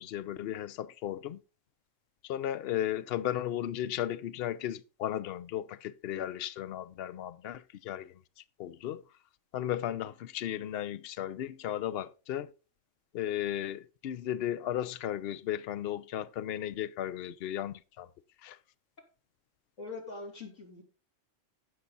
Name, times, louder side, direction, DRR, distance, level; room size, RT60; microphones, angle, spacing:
voice 1, 0.0-1.4 2.3-8.1 8.6-9.0 9.5-12.5 13.1-18.1 18.4-18.6, left 11 dB, 60° left, 0.7 m, -35 dB
voice 2, 19.8-20.8, left 3 dB, 75° left, 3.5 m, -42 dB
15.5 x 5.8 x 3.9 m
omnidirectional pair, 1.3 m